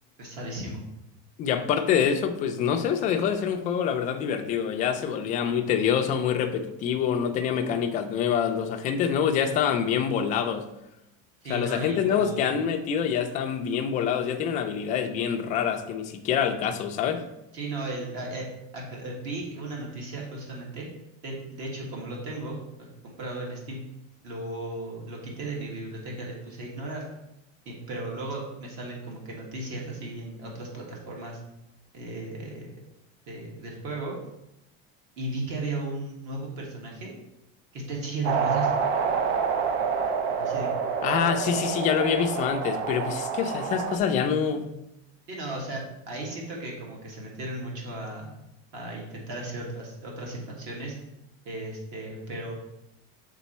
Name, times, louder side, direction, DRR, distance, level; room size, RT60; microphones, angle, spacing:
voice 1, 0.2-0.8 11.4-12.5 17.5-18.5 18.7-20.9 21.2-23.8 24.2-27.0 27.6-31.4 31.9-32.8 33.3-34.2 35.2-37.1 37.7-38.7 40.3-40.7 45.3-48.3 48.7-51.0 51.4-52.5, right 2 dB, 50° right, -1 dB, 1.6 m, -35 dB
voice 2, 1.4-10.6 11.5-17.2 41.0-44.7, left 7 dB, 25° left, 5 dB, 0.4 m, -26 dB
sound 1, 38.2-44.0, right 6 dB, 75° right, 0.8 m, -27 dB
7.1 x 3.7 x 4.2 m, 0.86 s
cardioid pair, 175°, 32 cm